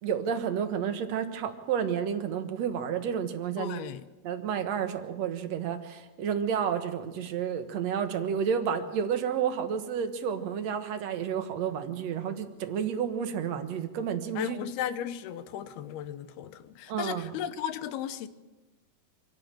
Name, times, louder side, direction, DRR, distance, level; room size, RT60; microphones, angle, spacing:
voice 1, 0.0-3.8 4.2-14.6 16.9-17.3, right 8 dB, 60° right, 2.0 m, -31 dB
voice 2, 3.6-4.0 14.4-18.3, left 10 dB, 85° left, 3.0 m, -35 dB
27.0 x 11.5 x 8.9 m
omnidirectional pair, 4.4 m